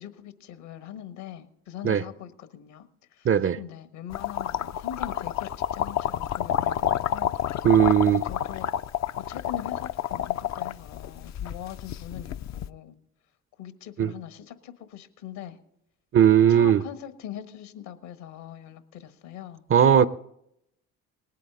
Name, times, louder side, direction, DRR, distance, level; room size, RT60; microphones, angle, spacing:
voice 1, 0.0-3.3 3.6-7.3 8.3-8.7 9.3-13.0 13.6-15.6 16.5-20.1, left 10 dB, 65° left, 1.5 m, -41 dB
voice 2, 3.2-3.6 7.6-8.2 14.0-14.1 16.1-16.8 19.7-20.1, right 9 dB, 30° right, 0.6 m, -18 dB
sound 1, 4.1-12.7, left 10 dB, 40° left, 0.6 m, -29 dB
19.5 x 8.5 x 3.7 m
figure-of-eight pair, 50°, 45 cm